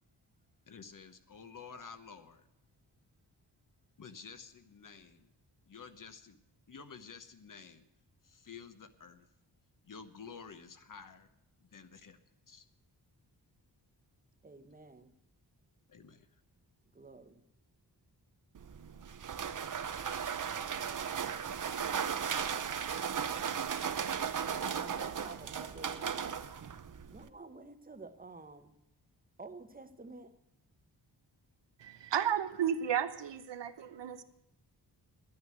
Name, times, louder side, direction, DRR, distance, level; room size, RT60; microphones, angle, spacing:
voice 1, 0.7-2.5 4.0-5.3 5.7-6.4 6.7-7.8 8.2-9.3 9.8-11.3 11.6-12.2 12.5-12.7 15.9-16.3, left 5 dB, 50° left, 10 dB, 1.0 m, -51 dB
voice 2, 14.4-15.1 16.9-17.4 24.5-26.0 27.1-28.7 29.4-30.3, right 3 dB, 20° right, 10 dB, 0.8 m, -50 dB
sound 1, 18.5-27.3, right 7 dB, 50° right, 0.7 m, -36 dB
voice 3, 31.8-34.2, right 9 dB, 85° right, 11 dB, 1.0 m, -33 dB
11.0 x 9.3 x 9.2 m, 0.85 s
wide cardioid pair, 170°, 42 cm